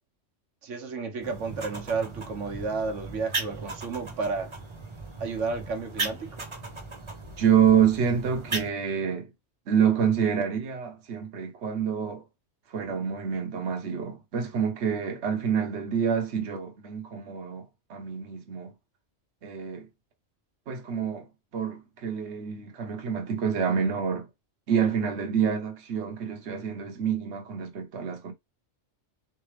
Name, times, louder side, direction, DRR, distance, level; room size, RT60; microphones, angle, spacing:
voice 1, 0.6-4.5 5.2-6.5, right 4 dB, 85° right, 1.3 m, -32 dB
sound 1, 1.2-8.7, right 3 dB, 25° right, 0.9 m, -37 dB
voice 2, 7.4-9.3 9.7-12.2 12.7-18.7 19.4-19.9 20.7-21.3 21.5-24.3 24.7-28.3, right 7 dB, 65° right, 1.1 m, -27 dB
4.1 x 3.3 x 3.2 m
omnidirectional pair, 1.2 m